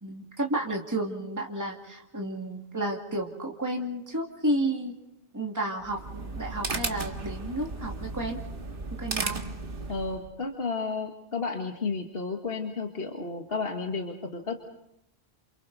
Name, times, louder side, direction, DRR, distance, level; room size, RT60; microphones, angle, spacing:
voice 1, 0.0-5.0 5.3-8.4 9.0-9.4, right 1 dB, 15° right, 0 dB, 2.3 m, -31 dB
sound 1, 5.8-10.3, right 3 dB, 55° right, 1.7 m, -35 dB
voice 2, 9.9-14.6, left 4 dB, 60° left, 3 dB, 1.8 m, -32 dB
29.0 x 28.5 x 4.1 m, 0.81 s
omnidirectional pair, 1.1 m